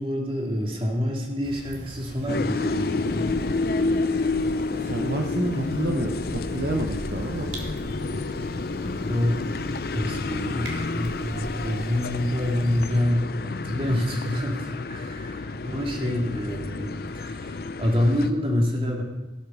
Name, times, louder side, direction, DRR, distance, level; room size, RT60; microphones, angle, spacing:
voice 1, 0.0-3.3 9.0-9.4 9.9-19.0, left 1 dB, 30° right, 0 dB, 2.2 m, -27 dB
sound 1, 1.4-12.9, equal, 75° right, 2.6 m, -39 dB
sound 2, 2.3-18.3, left 3 dB, 55° left, 0.5 m, -30 dB
voice 2, 4.8-7.5, right 2 dB, 60° right, 2 dB, 0.9 m, -29 dB
17.0 x 6.6 x 6.1 m, 1.1 s
head